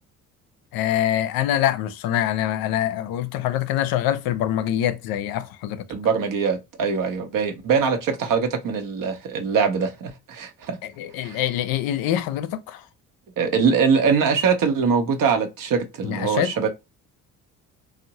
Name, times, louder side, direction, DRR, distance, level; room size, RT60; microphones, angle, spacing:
voice 1, 0.7-5.9 11.0-12.8 16.0-16.7, left 11 dB, 65° left, 0.5 m, -24 dB
voice 2, 5.9-10.8 11.2-11.4 13.4-16.7, right 5 dB, 55° right, 0.8 m, -22 dB
2.6 x 2.1 x 2.8 m
hypercardioid pair, 55°, 39 cm